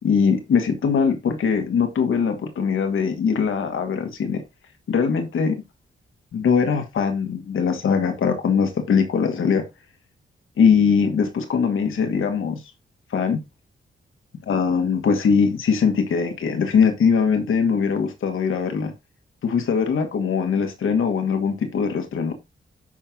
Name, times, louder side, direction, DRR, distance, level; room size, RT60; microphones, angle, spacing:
voice 1, 0.0-4.4 4.9-5.6 6.3-9.6 10.6-12.6 13.1-13.4 14.5-18.9 19.4-22.3, left 6 dB, 80° left, 2.1 m, -21 dB
11.5 x 4.5 x 3.9 m
supercardioid pair, 50°, 21 cm